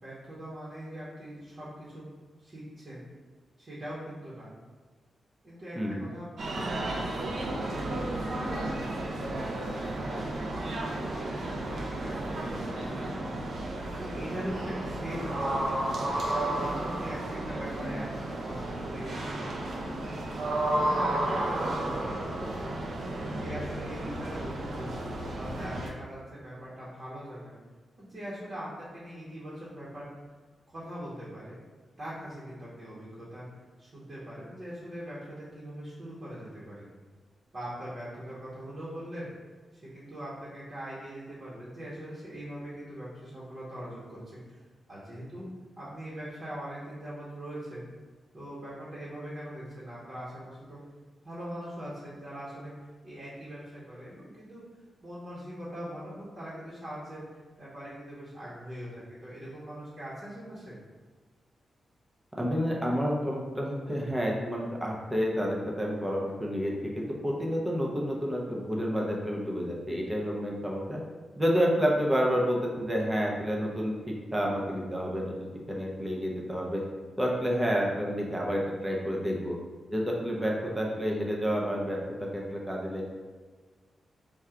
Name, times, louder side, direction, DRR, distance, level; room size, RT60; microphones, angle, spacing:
voice 1, 0.0-2.1 2.4-3.0 3.6-4.5 5.4-13.1 14.0-15.6 16.5-19.5 20.2-22.8 23.3-25.0 25.3-27.6 28.0-30.1 30.7-31.6 32.0-33.5 33.8-36.9 37.5-39.3 39.7-44.6 44.9-47.9 48.3-50.8 51.2-52.7 53.0-54.6 55.0-57.2 57.6-60.8, equal, 40° right, -9 dB, 1.0 m, -41 dB
voice 2, 5.8-6.1 62.3-71.0 71.4-73.9 74.3-75.3 75.7-76.8 77.2-79.6 79.9-83.0, equal, 10° right, -2 dB, 0.6 m, -29 dB
sound 1, 6.4-25.9, right 1 dB, 60° right, 0.6 m, -33 dB
3.6 x 2.3 x 4.3 m, 1.4 s
wide cardioid pair, 155°, 0 cm